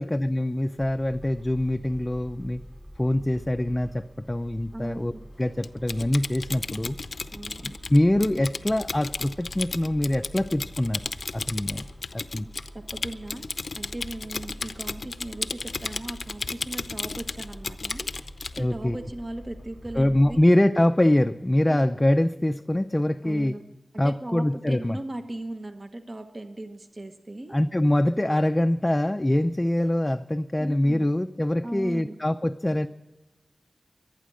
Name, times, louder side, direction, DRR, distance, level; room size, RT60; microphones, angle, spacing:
voice 1, 0.0-2.6 3.0-5.1 5.4-7.0 7.6-11.0 11.3-11.9 12.1-12.5 18.6-19.0 20.0-23.6 24.0-25.0 27.5-32.9, left 1 dB, 20° left, 6 dB, 0.5 m, -24 dB
sound 1, 0.8-20.4, equal, 15° right, 2.7 m, -45 dB
voice 2, 4.7-5.2 7.3-7.8 12.7-18.1 18.6-20.4 21.7-21.8 23.2-23.6 24.0-27.6 30.6-31.1 31.6-32.2, right 1 dB, 40° right, 7 dB, 1.2 m, -38 dB
Typing, 5.6-18.6, left 4 dB, 70° left, 0.6 m, -34 dB
23.5 x 9.3 x 6.3 m, 1.1 s
wide cardioid pair, 80°, 0 cm